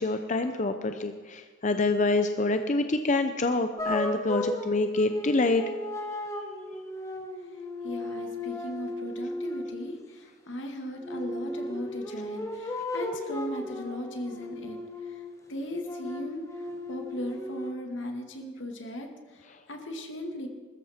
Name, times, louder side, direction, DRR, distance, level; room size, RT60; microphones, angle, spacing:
voice 1, 0.0-5.6, left 2 dB, 40° left, 8 dB, 0.6 m, -26 dB
sound 1, 3.8-9.8 11.0-15.4 15.8-17.7, left 1 dB, 15° left, 1.2 m, -35 dB
voice 2, 7.8-14.8 15.0-15.2 15.5-20.5, left 1 dB, 80° left, 4 dB, 2.0 m, -37 dB
21.0 x 13.5 x 4.3 m, 1.4 s
head